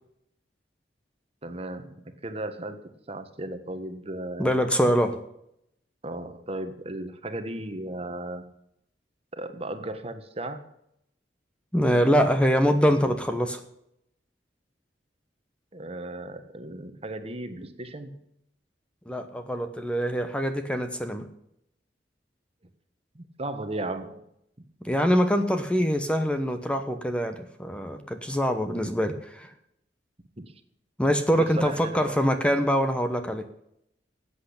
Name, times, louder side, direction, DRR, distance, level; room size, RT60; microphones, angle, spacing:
voice 1, 1.4-1.9 2.2-4.5 6.0-8.5 9.3-10.7 15.7-18.2 23.1-24.3 30.4-30.5 31.3-32.2, right 1 dB, 35° right, 9 dB, 1.4 m, -35 dB
voice 2, 4.4-5.2 11.7-13.6 19.1-21.3 24.8-29.5 31.0-33.4, equal, 5° left, 7 dB, 1.1 m, -24 dB
13.5 x 8.4 x 8.6 m, 0.76 s
head